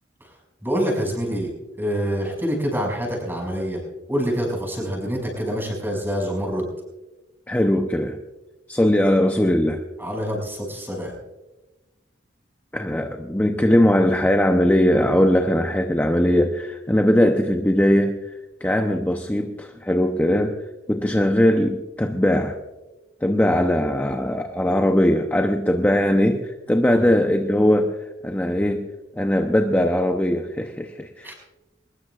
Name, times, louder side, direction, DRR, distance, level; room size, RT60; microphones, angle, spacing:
voice 1, 0.6-1.5 1.8-3.8 4.1-6.7 10.0-11.1 26.9-27.0 31.2-31.3, equal, 10° right, -1 dB, 5.8 m, -26 dB
voice 2, 7.5-8.2 8.7-9.8 12.7-18.2 18.6-20.6 20.9-22.6 23.2-28.0 28.2-28.9 29.1-31.3, left 1 dB, 10° left, 4 dB, 0.7 m, -20 dB
22.5 x 20.5 x 2.5 m, 1.1 s
head